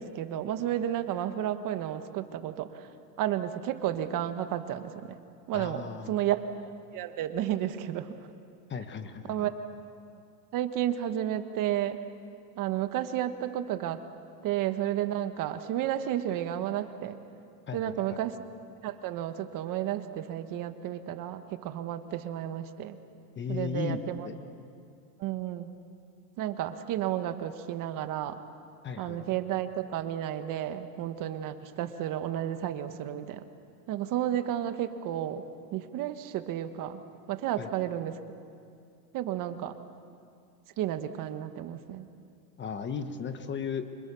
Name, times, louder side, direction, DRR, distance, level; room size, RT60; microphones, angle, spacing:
voice 1, 0.0-2.9 3.2-5.2 5.5-8.3 9.3-9.5 10.5-12.0 12.6-14.0 14.4-17.2 17.7-18.4 18.8-23.0 23.5-24.3 25.2-25.7 26.4-28.4 29.0-33.4 33.9-35.4 35.7-37.0 37.3-38.5 39.1-39.8 40.8-42.1, right 11 dB, 45° right, 9 dB, 1.5 m, -32 dB
voice 2, 5.5-6.2 8.7-9.5 17.7-18.2 23.4-24.0 24.2-24.3 28.8-29.2 37.6-37.7 42.6-43.9, left 6 dB, 25° left, 9 dB, 1.3 m, -36 dB
30.0 x 26.0 x 7.0 m, 2.4 s
supercardioid pair, 140°, 46 cm